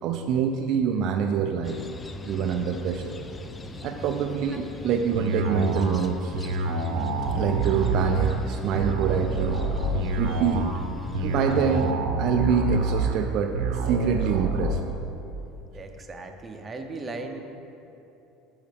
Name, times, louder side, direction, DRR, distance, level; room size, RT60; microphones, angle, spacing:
voice 1, 0.0-1.8 2.2-3.1 3.8-6.3 7.3-9.6 10.2-10.7 11.2-11.9 12.2-13.5 13.8-14.8, right 7 dB, 60° right, 4 dB, 0.4 m, -26 dB
sound 1, 1.6-11.9, left 3 dB, 20° left, 0.4 m, -40 dB
sound 2, 5.1-14.7, right 3 dB, 85° right, 0.8 m, -27 dB
voice 2, 15.7-17.4, right 3 dB, 25° right, 4 dB, 0.7 m, -37 dB
10.0 x 5.5 x 3.5 m, 3.0 s
supercardioid pair, 105°, 0 cm